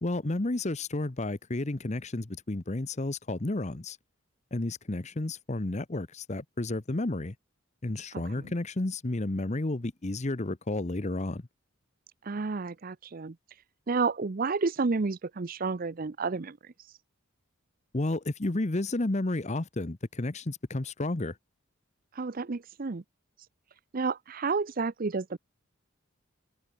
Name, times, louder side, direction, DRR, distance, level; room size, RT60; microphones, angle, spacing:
voice 1, 0.0-4.0 4.5-7.3 7.8-11.4 17.9-21.3, left 2 dB, 35° left, 0.9 m, -31 dB
voice 2, 8.1-8.5 12.2-13.4 13.9-16.6 22.1-23.0 23.9-25.4, right 4 dB, 45° right, 0.6 m, -31 dB
head